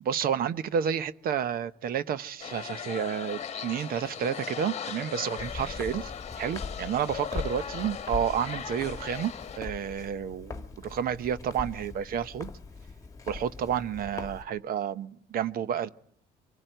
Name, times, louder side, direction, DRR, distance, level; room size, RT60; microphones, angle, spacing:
voice 1, 0.0-6.1 6.4-12.5 13.3-15.9, right 8 dB, 60° right, 0.9 m, -30 dB
sound 1, 2.4-9.6, left 7 dB, 40° left, 1.3 m, -38 dB
Walk footsteps, 5.4-14.4, left 4 dB, 20° left, 1.7 m, -41 dB
25.0 x 15.0 x 9.1 m
cardioid pair, 110°, 17 cm